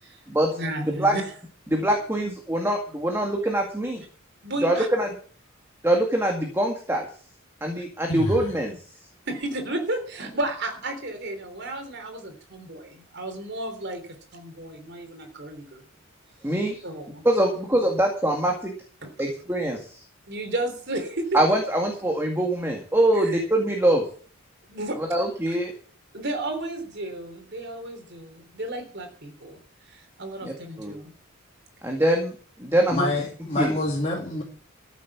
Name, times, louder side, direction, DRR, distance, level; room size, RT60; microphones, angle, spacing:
voice 1, 0.5-1.4 4.4-4.9 9.2-15.8 16.8-17.2 19.0-19.1 20.3-21.4 23.1-23.4 24.7-25.0 25.5-25.6 26.1-29.6 29.9-31.1, right 1 dB, 50° right, 5 dB, 3.5 m, -33 dB
voice 2, 1.7-4.0 4.6-5.1 5.8-7.1 7.6-8.8 16.4-16.8 17.2-18.7 19.2-20.0 21.3-24.0 25.0-25.7 30.4-30.9 31.8-32.3 32.6-33.1 33.5-33.7, right 1 dB, 10° right, 1 dB, 2.1 m, -23 dB
voice 3, 8.1-8.5 32.9-34.4, left 1 dB, 30° left, -2 dB, 2.6 m, -27 dB
14.0 x 7.4 x 7.2 m, 0.43 s
head